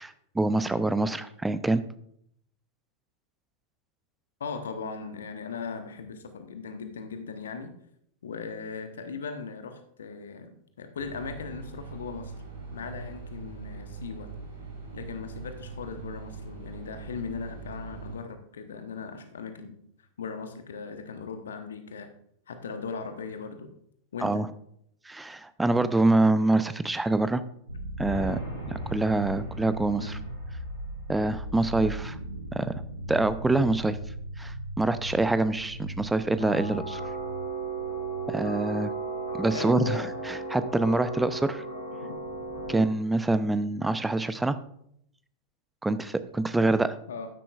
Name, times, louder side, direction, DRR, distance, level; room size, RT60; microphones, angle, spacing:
voice 1, 0.0-1.8 24.2-24.5 25.1-27.4 28.0-28.4 28.7-30.2 31.1-32.2 32.5-32.8 33.1-34.0 34.4-37.0 38.3-38.9 39.4-41.6 42.7-44.6 45.8-47.0, right 2 dB, 5° right, 13 dB, 0.5 m, -25 dB
voice 2, 4.4-7.7 8.2-10.5 10.8-12.3 12.7-14.3 14.9-19.8 20.2-22.1 22.5-23.7 24.1-24.4 30.0-30.2 39.5-40.0 42.0-42.2 47.1-47.3, left 5 dB, 65° left, 8 dB, 1.0 m, -38 dB
sound 1, 11.0-18.2, right 4 dB, 65° right, 3.7 m, -42 dB
sound 2, 27.7-41.6, right 1 dB, 85° right, 0.9 m, -39 dB
sound 3, 28.0-30.9 36.4-42.8, right 3 dB, 85° left, 4.2 m, -36 dB
12.5 x 10.0 x 2.4 m, 0.71 s
figure-of-eight pair, 90°, 0 cm